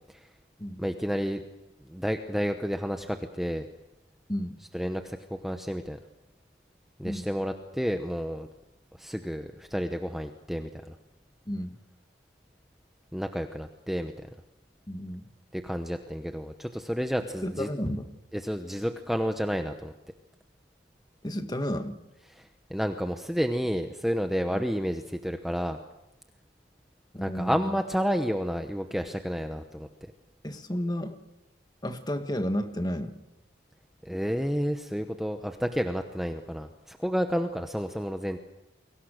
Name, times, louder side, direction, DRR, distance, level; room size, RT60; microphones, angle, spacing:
voice 1, 0.8-1.4 1.9-3.7 4.7-6.0 7.0-8.5 9.0-10.9 13.1-14.3 15.5-17.7 18.3-19.9 22.3-25.8 27.2-29.9 34.0-38.4, equal, ahead, 6 dB, 0.9 m, -30 dB
voice 2, 11.5-11.8 14.9-15.2 17.4-18.1 21.2-22.0 24.5-24.6 27.1-27.8 30.4-31.2 31.8-33.2, equal, 20° left, 8 dB, 1.6 m, -32 dB
30.0 x 23.0 x 6.5 m, 0.96 s
head